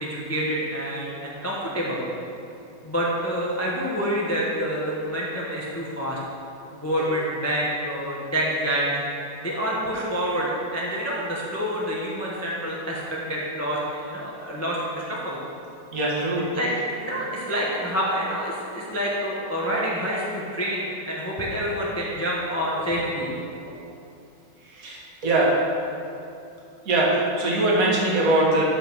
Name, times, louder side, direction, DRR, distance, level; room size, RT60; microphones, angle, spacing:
voice 1, 0.0-2.1 2.8-6.2 6.8-9.0 9.4-15.4 16.5-23.6, equal, 15° left, -4 dB, 0.5 m, -27 dB
voice 2, 15.9-16.5 24.7-25.7 26.9-28.6, right 2 dB, 45° right, -4 dB, 1.8 m, -22 dB
7.9 x 5.3 x 6.1 m, 2.7 s
omnidirectional pair, 2.3 m